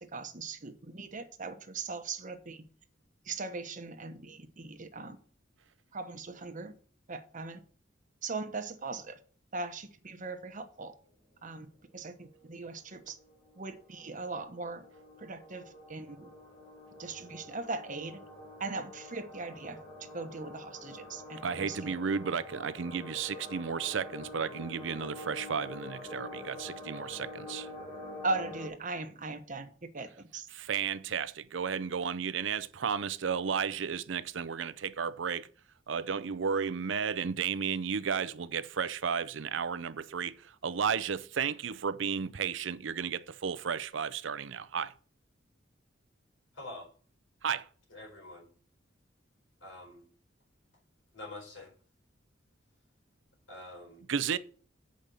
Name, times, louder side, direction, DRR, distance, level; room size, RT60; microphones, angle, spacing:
voice 1, 0.0-2.6 3.3-5.2 5.9-6.7 7.1-7.6 8.2-9.2 9.5-10.9 11.4-11.7 11.9-13.2 13.6-14.8 15.2-15.6 15.9-16.3 17.0-18.2 18.6-21.9 28.2-29.7 29.9-30.5, right 3 dB, 45° right, 1.0 m, -39 dB
sound 1, 12.0-28.7, left 2 dB, 35° left, 3.7 m, -46 dB
voice 2, 21.4-27.7 30.5-35.5 35.9-44.9 47.4-47.7 54.1-54.4, right 6 dB, 70° right, 0.5 m, -33 dB
voice 3, 46.5-46.9 47.9-48.5 49.6-50.1 51.1-51.7 53.5-54.0, left 2 dB, 90° left, 4.6 m, -46 dB
7.6 x 5.2 x 6.8 m
head